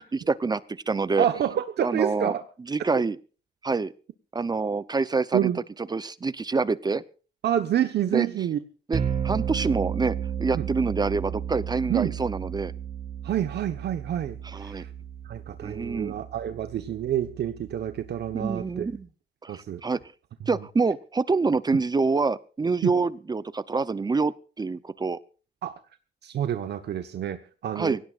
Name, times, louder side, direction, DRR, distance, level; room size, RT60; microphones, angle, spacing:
voice 1, 0.1-1.3 1.8-2.3 2.7-3.2 3.6-3.9 4.3-5.5 5.9-7.0 8.1-8.3 8.9-12.7 14.4-14.9 15.6-16.1 18.3-19.1 19.4-20.0 20.5-25.2 27.7-28.0, right 4 dB, 20° right, 15 dB, 0.7 m, -26 dB
voice 2, 1.2-2.4 5.3-5.6 7.4-8.6 10.5-10.7 11.9-12.2 13.2-14.9 15.2-18.9 19.5-19.8 22.8-22.9 25.6-25.7 26.2-28.0, right 10 dB, 65° right, 8 dB, 1.2 m, -28 dB
sound 1, 8.9-19.0, right 8 dB, 40° right, 4.2 m, -34 dB
24.5 x 17.0 x 2.5 m, 0.38 s
cardioid pair, 145°, 18 cm